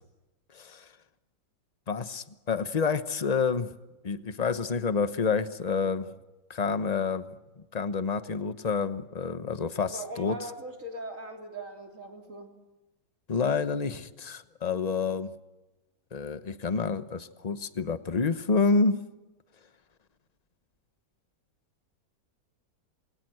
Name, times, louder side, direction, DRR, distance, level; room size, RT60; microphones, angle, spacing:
voice 1, 1.9-3.7 4.0-6.1 6.5-7.3 7.7-10.4 13.3-15.3 16.1-19.0, left 5 dB, 30° left, 0.9 m, -28 dB
voice 2, 9.7-12.5, right 1 dB, 45° right, 3.9 m, -40 dB
28.5 x 22.5 x 7.9 m
omnidirectional pair, 1.9 m